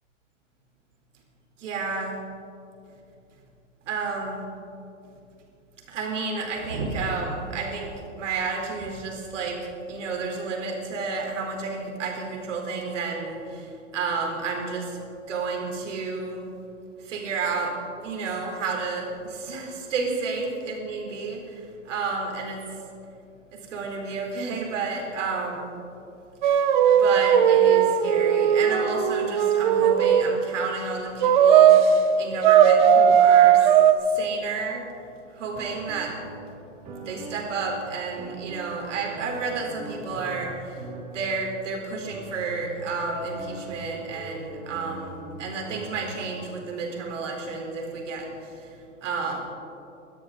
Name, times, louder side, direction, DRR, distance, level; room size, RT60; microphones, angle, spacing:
voice 1, 1.6-2.2 3.9-4.4 5.9-15.0 15.3-16.5 17.0-17.8 18.0-22.7 23.5-25.7 26.9-31.8 32.2-33.7 34.0-34.8 35.3-36.2 37.1-40.8 41.1-48.7 49.0-49.4, right 4 dB, 70° right, 0 dB, 4.0 m, -31 dB
sound 1, 26.4-30.3 31.2-31.9 32.4-33.9, right 9 dB, 40° right, 0.7 m, -17 dB
sound 2, 35.5-46.0, right 2 dB, 20° right, 2.3 m, -40 dB
21.5 x 13.0 x 3.9 m, 2.7 s
hypercardioid pair, 170°, 38 cm